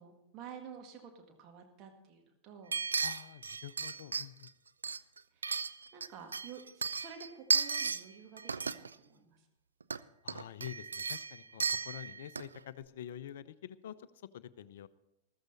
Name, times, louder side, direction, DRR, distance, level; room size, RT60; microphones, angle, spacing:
voice 1, 0.0-2.8 5.3-5.6 5.9-9.5, right 7 dB, 35° right, 4 dB, 1.8 m, -51 dB
sound 1, 2.7-4.5 4.8-6.1 6.3-8.0 8.4-8.9 9.8-10.0 10.3-12.6 12.8-12.9, right 5 dB, 75° right, 0.4 m, -34 dB
voice 2, 3.0-4.5 10.2-13.9 14.3-14.9, left 11 dB, 60° left, 16 dB, 0.6 m, -47 dB
14.5 x 14.0 x 4.1 m, 0.90 s
figure-of-eight pair, 90°, 0 cm